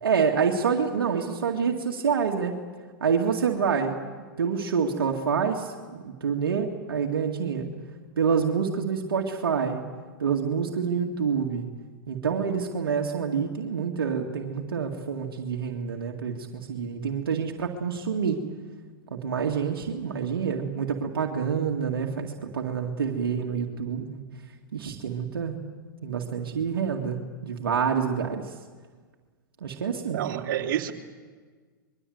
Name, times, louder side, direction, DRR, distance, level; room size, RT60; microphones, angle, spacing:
voice 1, 0.0-2.5 3.0-4.0 4.4-7.7 8.2-9.8 10.2-11.7 12.1-18.4 19.1-24.2 24.7-25.6 26.0-28.5 29.6-30.2, right 6 dB, 85° right, 1 dB, 2.2 m, -27 dB
voice 2, 30.1-30.9, right 11 dB, 60° right, 2 dB, 2.9 m, -28 dB
26.0 x 22.5 x 8.0 m, 1.5 s
hypercardioid pair, 120°, 12 cm